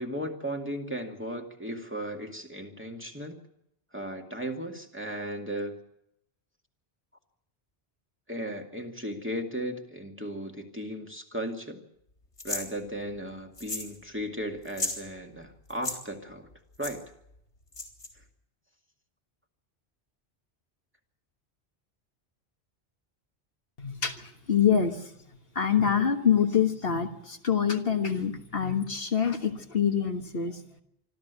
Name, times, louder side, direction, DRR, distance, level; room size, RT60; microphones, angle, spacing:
voice 1, 0.0-3.4 3.9-5.8 8.3-11.8 12.4-16.5 16.8-17.0, equal, 10° right, 2 dB, 2.3 m, -36 dB
sound 1, 12.4-12.7 13.6-14.0 14.2-14.3 14.6-15.0 15.7-16.0 16.8-16.9 17.7-18.1, left 2 dB, 85° left, 4.1 m, -34 dB
voice 2, 23.8-25.1 25.6-30.6, left 7 dB, 60° left, 5 dB, 1.7 m, -26 dB
25.5 x 13.5 x 8.3 m, 0.78 s
omnidirectional pair, 1.1 m